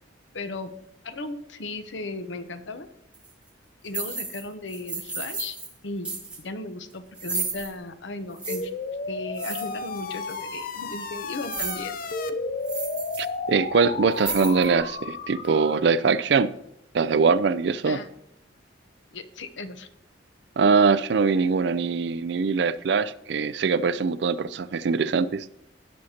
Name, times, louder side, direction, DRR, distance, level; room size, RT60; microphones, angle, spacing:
voice 1, 0.3-0.7 1.0-2.9 3.8-5.6 5.8-6.1 6.4-8.7 9.1-12.0 17.8-18.1 19.1-19.9, left 2 dB, 80° left, 0.8 m, -36 dB
sound 1, 3.1-3.3 3.9-4.4 4.7-5.7 6.0-6.4 7.1-7.7 8.4-8.6 9.4-10.0 10.3-10.4 11.3-11.8 12.2-12.3 12.6-13.2 13.5-13.7 14.1-14.8, right 4 dB, 5° right, 2.6 m, -33 dB
sound 2, 8.5-15.9, left 3 dB, 50° left, 0.5 m, -33 dB
voice 2, 13.2-16.5 16.9-18.0 20.6-25.5, right 5 dB, 65° right, 0.4 m, -22 dB
17.5 x 6.4 x 2.9 m
head